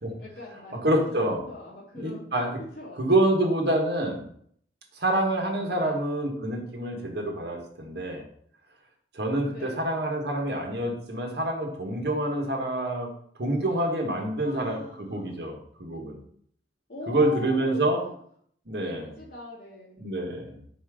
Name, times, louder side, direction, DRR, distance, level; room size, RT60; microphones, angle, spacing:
voice 1, 0.2-2.2 2.6-3.0 5.7-6.0 9.5-9.9 14.3-15.6 16.9-18.1 18.8-20.0, left 2 dB, 60° left, -6 dB, 2.5 m, -42 dB
voice 2, 0.8-1.4 2.0-2.6 3.0-4.2 5.0-8.3 9.1-13.1 13.4-16.2 17.1-18.0 18.7-19.1 20.0-20.6, right 1 dB, 65° right, 1 dB, 1.4 m, -27 dB
4.6 x 4.3 x 5.0 m, 0.63 s
head